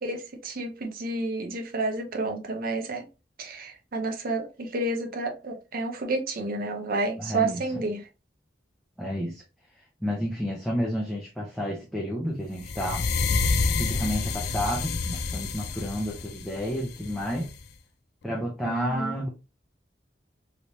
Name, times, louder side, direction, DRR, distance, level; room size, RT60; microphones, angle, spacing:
voice 1, 0.0-3.1 3.4-8.1 18.6-19.2, right 2 dB, 55° right, 0.7 m, -30 dB
voice 2, 7.2-7.6 9.0-9.4 10.0-13.0 13.8-17.5 18.2-19.3, equal, ahead, 0.6 m, -30 dB
sound 1, 12.6-17.6, left 4 dB, 65° left, 0.4 m, -28 dB
3.2 x 3.0 x 2.7 m
head